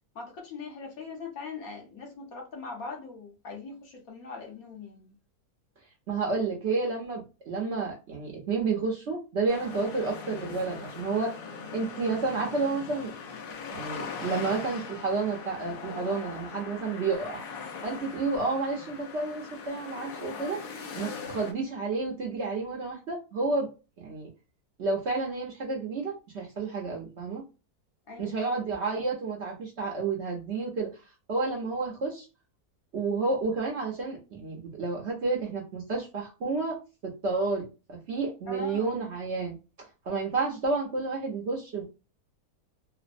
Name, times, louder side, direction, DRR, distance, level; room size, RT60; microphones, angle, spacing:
voice 1, 0.1-5.1 28.1-28.6 38.5-39.0, left 4 dB, 70° left, 1.2 m, -41 dB
voice 2, 6.1-11.4 11.7-13.1 13.7-17.4 17.8-20.6 20.9-23.7 24.0-24.3 24.8-27.4 28.2-30.9 31.3-32.3 32.9-36.8 37.0-39.6 40.1-41.8, right 3 dB, 55° right, 0.8 m, -30 dB
sound 1, 9.5-21.5, left 5 dB, 85° left, 1.2 m, -40 dB
3.2 x 2.0 x 2.5 m
omnidirectional pair, 1.7 m